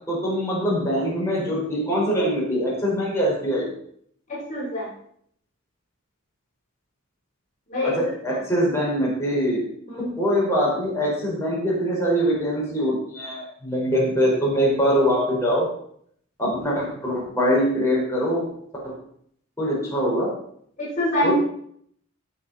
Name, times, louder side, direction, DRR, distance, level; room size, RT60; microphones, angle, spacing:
voice 1, 0.1-3.7 7.8-9.6 10.2-15.6 16.4-18.5 19.6-20.3 21.2-21.3, equal, 15° left, -6 dB, 5.1 m, -23 dB
voice 2, 4.3-4.9 7.7-7.9 9.9-10.1 20.8-21.3, left 1 dB, 35° left, -6 dB, 4.5 m, -25 dB
17.5 x 6.9 x 4.4 m, 0.66 s
head